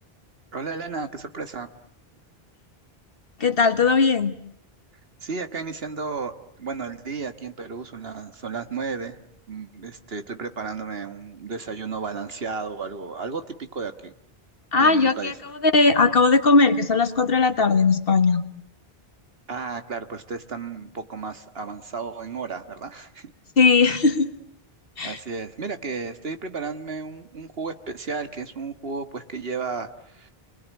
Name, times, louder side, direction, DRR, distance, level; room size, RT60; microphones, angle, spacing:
voice 1, 0.5-1.7 5.2-6.3 6.6-9.2 9.5-14.1 14.8-15.3 19.5-23.3 25.0-30.3, right 4 dB, 70° right, 9 dB, 1.8 m, -33 dB
voice 2, 3.4-4.3 14.7-15.3 15.6-18.4 23.6-24.3 25.0-25.2, left 4 dB, 65° left, 10 dB, 1.7 m, -18 dB
29.5 x 21.5 x 9.4 m, 0.71 s
omnidirectional pair, 1.0 m